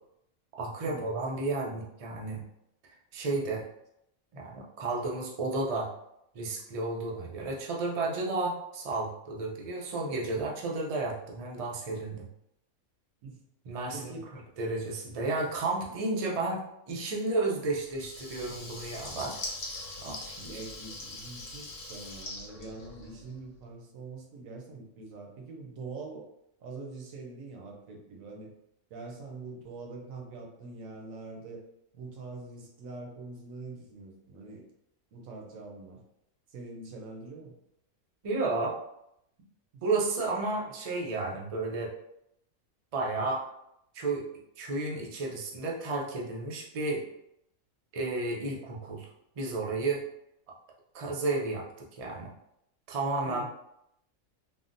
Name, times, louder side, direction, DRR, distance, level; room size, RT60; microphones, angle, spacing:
voice 1, 0.6-2.4 3.1-3.6 4.3-5.9 6.3-12.2 13.7-14.2 14.6-19.3 20.0-20.5 38.2-38.7 39.8-41.9 42.9-43.5 43.9-44.2 44.6-47.0 47.9-49.1 49.4-50.0 50.9-52.3 52.9-53.4, right 3 dB, 65° right, -2 dB, 0.3 m, -32 dB
voice 2, 13.9-14.3 15.8-15.9 20.4-26.3 26.6-28.5 28.9-31.6 31.9-34.7 35.1-36.0 36.5-37.6 39.7-39.8 48.5-48.7 53.2-53.4, right 3 dB, 85° right, 1 dB, 1.1 m, -44 dB
Water tap faucet / Liquid, 17.9-23.4, left 2 dB, 90° left, 1.2 m, -42 dB
3.5 x 2.1 x 2.5 m, 0.78 s
omnidirectional pair, 1.4 m